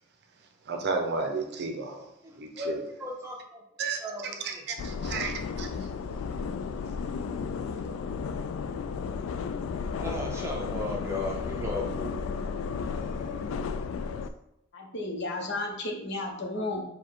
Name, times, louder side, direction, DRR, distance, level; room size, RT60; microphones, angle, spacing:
voice 1, 0.7-2.1 2.4-2.8 3.8-5.7, right 4 dB, 55° right, 4 dB, 0.6 m, -33 dB
voice 2, 2.2-3.6 4.0-4.6 10.0-12.4, left 1 dB, 15° right, -1 dB, 0.8 m, -36 dB
sound 1, 4.8-14.3, left 5 dB, 90° left, 0.3 m, -33 dB
voice 3, 14.7-16.8, left 2 dB, 60° left, 2 dB, 0.8 m, -33 dB
4.7 x 2.2 x 4.4 m, 0.81 s
head